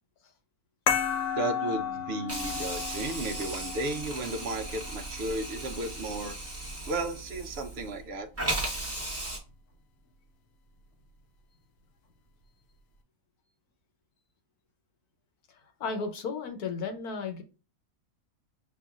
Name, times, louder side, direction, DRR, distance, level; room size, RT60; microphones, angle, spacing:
sound 1, 0.9-5.9, left 7 dB, 65° left, 1.0 m, -34 dB
voice 1, 1.4-6.4 6.9-8.3, right 2 dB, 60° right, 0.7 m, -34 dB
Hiss, 2.3-8.0 8.4-9.4, right 1 dB, 10° right, 0.8 m, -36 dB
voice 2, 15.8-17.4, left 5 dB, 80° left, 1.4 m, -34 dB
6.8 x 2.5 x 2.3 m
omnidirectional pair, 1.6 m